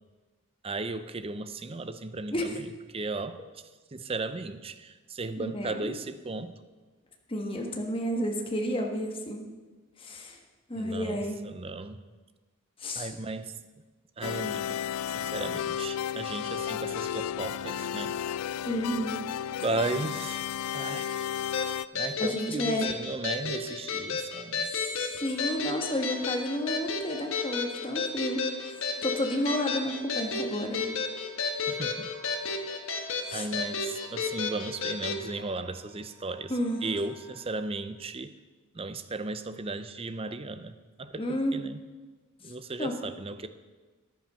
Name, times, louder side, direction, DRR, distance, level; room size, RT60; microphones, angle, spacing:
voice 1, 0.6-3.4 3.9-6.5 10.7-12.0 12.9-13.5 14.2-14.8 15.1-18.2 19.6-20.5 20.7-21.4 21.9-24.7 31.7-32.1 33.3-36.5 36.8-38.3 38.7-41.8 42.4-43.5, right 3 dB, 25° right, 11 dB, 0.5 m, -35 dB
voice 2, 5.4-5.9 7.3-9.4 10.0-10.4 10.7-11.4 12.8-13.1 18.6-19.2 22.2-22.9 24.6-28.4 28.7-30.8 33.2-33.5 36.5-36.8 41.2-41.6 42.8-42.9, equal, 25° left, 2 dB, 1.5 m, -31 dB
sound 1, 14.2-21.8, left 9 dB, 80° left, 0.3 m, -33 dB
sound 2, 21.5-35.2, left 4 dB, 65° left, 1.3 m, -32 dB
sound 3, 25.3-37.6, right 1 dB, 55° right, 2.7 m, -54 dB
14.0 x 10.5 x 5.6 m, 1.3 s
head